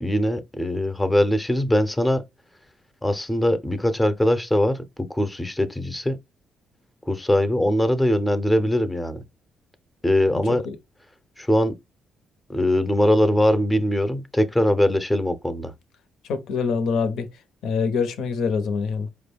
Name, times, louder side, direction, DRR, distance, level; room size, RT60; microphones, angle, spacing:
voice 1, 0.0-2.2 3.0-4.8 5.1-6.2 7.1-9.2 10.0-10.6 11.4-11.7 12.5-15.7, left 1 dB, 10° left, 0.6 m, -21 dB
voice 2, 10.3-10.8 16.3-17.3 17.6-19.1, left 5 dB, 80° left, 0.8 m, -25 dB
4.7 x 2.2 x 3.4 m
cardioid pair, 90°, 0 cm